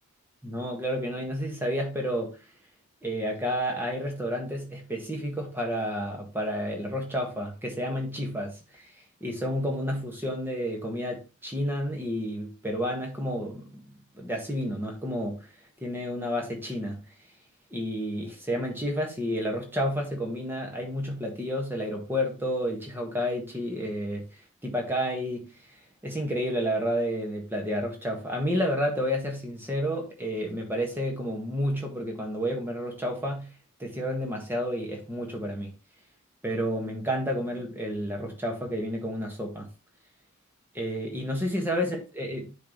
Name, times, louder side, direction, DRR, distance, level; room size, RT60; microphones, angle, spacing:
voice 1, 0.4-2.4 3.0-8.9 9.2-13.8 14.1-15.5 15.8-17.0 17.7-24.3 24.6-25.5 26.0-33.5 33.8-35.7 36.4-39.7 40.7-42.5, equal, 10° right, 1.5 m, -30 dB
9.8 x 4.1 x 3.0 m
head